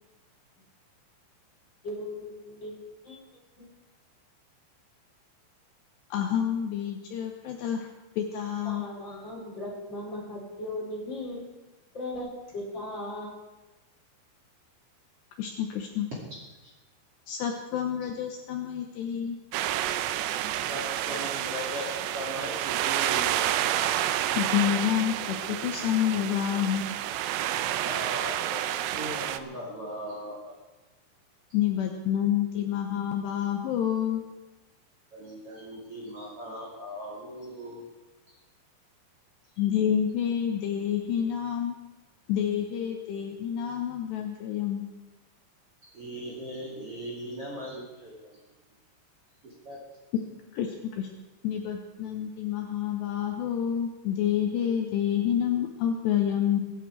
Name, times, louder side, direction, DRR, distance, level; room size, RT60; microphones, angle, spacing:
voice 1, 1.8-2.7 3.0-3.2 3.6-3.7 8.6-11.5 11.9-12.3 12.5-13.3, left 1 dB, 25° left, -3 dB, 3.8 m, -37 dB
voice 2, 6.1-7.9 8.2-8.9 15.4-16.1 17.3-19.4 24.4-26.9 31.5-34.2 39.6-41.8 42.3-44.9 50.5-51.1 51.4-56.6, left 9 dB, 75° left, 3 dB, 2.8 m, -28 dB
sound 1, 19.5-29.4, right 12 dB, 85° right, 2.4 m, -29 dB
voice 3, 20.6-23.4 27.8-30.6 35.1-37.8 45.8-48.3 49.4-49.8, equal, 40° right, -4 dB, 2.7 m, -39 dB
22.5 x 10.5 x 4.7 m, 1.1 s
omnidirectional pair, 5.7 m